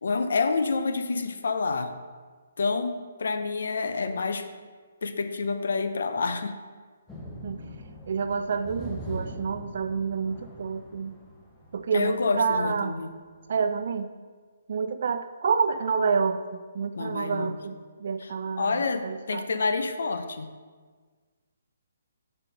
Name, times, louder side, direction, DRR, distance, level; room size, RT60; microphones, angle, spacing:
voice 1, 0.0-1.9 2.6-4.5 5.0-6.6 11.9-13.1 17.0-17.6 18.2-20.5, left 4 dB, 75° left, 9 dB, 0.5 m, -28 dB
sound 1, 7.1-12.4 13.4-13.5 13.9-14.0, equal, 10° left, 0.9 m, -42 dB
voice 2, 8.1-11.2 11.7-13.0 13.5-14.1 14.7-18.8 19.0-19.4, right 5 dB, 60° right, 9 dB, 0.3 m, -28 dB
5.4 x 4.5 x 5.1 m, 1.5 s
hypercardioid pair, 155°, 0 cm